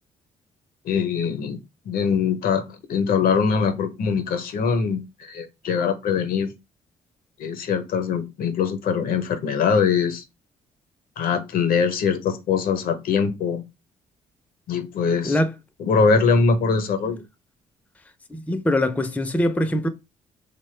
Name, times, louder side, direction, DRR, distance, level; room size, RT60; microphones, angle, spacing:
voice 1, 0.8-1.6 1.8-6.5 7.4-10.2 11.2-13.6 14.7-15.4 15.8-17.2, left 5 dB, 65° left, 0.6 m, -22 dB
voice 2, 18.3-19.9, left 1 dB, 10° left, 0.4 m, -22 dB
3.0 x 2.1 x 3.1 m
supercardioid pair, 65°, 16 cm